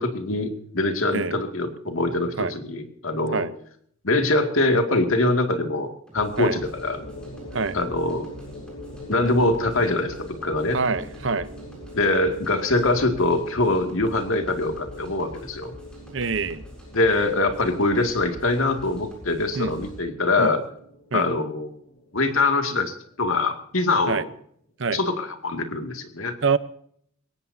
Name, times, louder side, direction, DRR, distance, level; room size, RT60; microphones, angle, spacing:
voice 1, 0.0-3.5 4.0-7.0 7.7-8.3 9.1-10.8 11.9-15.7 16.9-20.6 21.1-21.7 22.1-24.3 24.9-26.3, left 2 dB, 80° left, 5 dB, 2.3 m, -23 dB
sound 1, 6.1-20.0, equal, 5° left, 7.1 m, -45 dB
sound 2, 6.8-24.1, left 1 dB, 60° left, 3.6 m, -44 dB
voice 2, 10.7-11.5 16.1-16.6 19.6-19.7 20.4-20.5 21.1-21.3 24.1-24.2 24.8-25.0 26.4-26.6, right 4 dB, 65° right, 14 dB, 0.8 m, -25 dB
22.0 x 18.5 x 2.8 m, 0.65 s
head